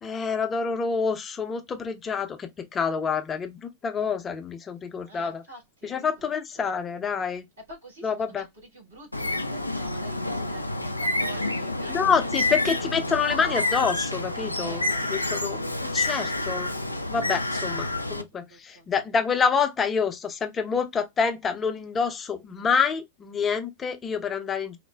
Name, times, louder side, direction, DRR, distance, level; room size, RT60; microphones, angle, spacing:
voice 1, 0.0-5.4 5.8-7.4 8.0-8.4 11.9-15.6 15.9-16.7 17.1-24.8, left 6 dB, 20° left, 0.6 m, -27 dB
voice 2, 5.0-6.8 7.6-13.9 14.6-15.6 18.5-18.9, right 1 dB, 65° right, 2.4 m, -47 dB
Bird, 9.1-18.2, left 2 dB, 85° left, 0.3 m, -28 dB
4.2 x 2.2 x 2.2 m
figure-of-eight pair, 90°, 0 cm